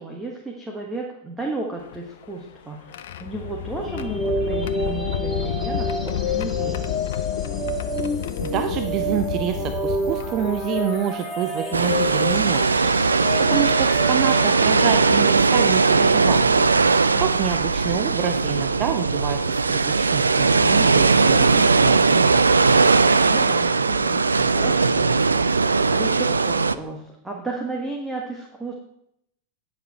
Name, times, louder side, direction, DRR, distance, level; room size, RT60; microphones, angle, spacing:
voice 1, 0.0-6.9 17.1-17.6 23.3-24.2 24.5-25.3 25.9-28.7, right 2 dB, 10° right, 0 dB, 1.3 m, -33 dB
sound 1, 1.8-11.1 12.0-12.1 13.5-13.8 14.5-14.7 16.3-16.4 16.8-17.1, left 11 dB, 55° left, 0.5 m, -31 dB
sound 2, 3.9-15.2, equal, 15° left, 2.3 m, -29 dB
voice 2, 8.4-12.9 13.5-16.7 17.2-22.4, right 10 dB, 35° right, 7 dB, 0.6 m, -27 dB
sound 3, 11.7-26.7, right 4 dB, 75° right, 0.3 m, -19 dB
9.6 x 7.0 x 4.4 m, 0.77 s
figure-of-eight pair, 90°, 0 cm